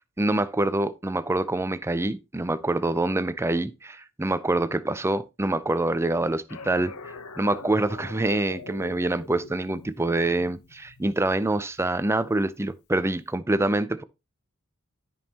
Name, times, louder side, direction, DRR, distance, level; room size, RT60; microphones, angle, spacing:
voice 1, 0.2-6.9 7.4-14.0, right 2 dB, 10° right, 0.5 m, -25 dB
sound 1, 6.5-11.8, left 4 dB, 85° left, 0.9 m, -43 dB
13.0 x 5.4 x 2.9 m
head